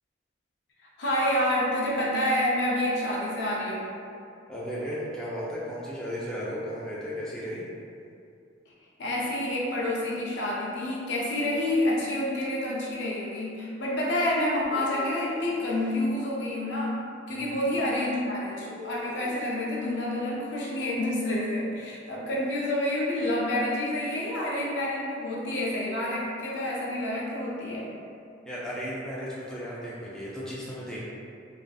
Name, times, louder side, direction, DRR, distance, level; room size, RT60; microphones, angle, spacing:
voice 1, 1.0-3.9 9.0-27.9, left 1 dB, 65° left, -5 dB, 0.4 m, -28 dB
voice 2, 4.5-7.6 17.3-17.4 28.4-31.0, equal, 5° left, -8 dB, 0.4 m, -35 dB
sound 1, 14.7-16.1 18.7-19.8, left 2 dB, 40° right, 0.6 m, -43 dB
2.6 x 2.4 x 2.3 m, 2.5 s
head